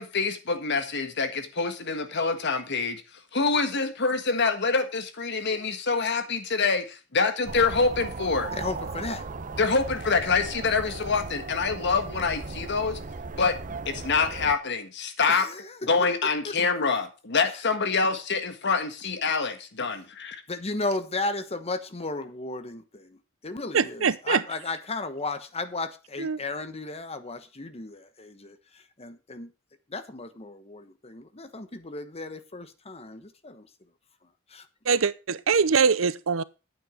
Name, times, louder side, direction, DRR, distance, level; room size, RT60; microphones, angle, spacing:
voice 1, 0.0-3.0 3.3-8.5 9.6-13.0 13.3-13.6 13.8-15.5 15.8-20.4, left 4 dB, 60° left, 1.6 m, -26 dB
sound 1, 7.4-14.5, right 3 dB, 40° right, 0.8 m, -37 dB
voice 2, 8.5-9.3 15.3-15.8 16.4-16.5 20.5-23.2 23.4-28.6 29.0-29.5 29.9-33.7 34.5-34.6, left 3 dB, 30° left, 1.2 m, -34 dB
voice 3, 23.7-24.4 26.2-26.4 34.9-36.4, right 5 dB, 85° right, 0.7 m, -23 dB
9.3 x 8.8 x 5.1 m
head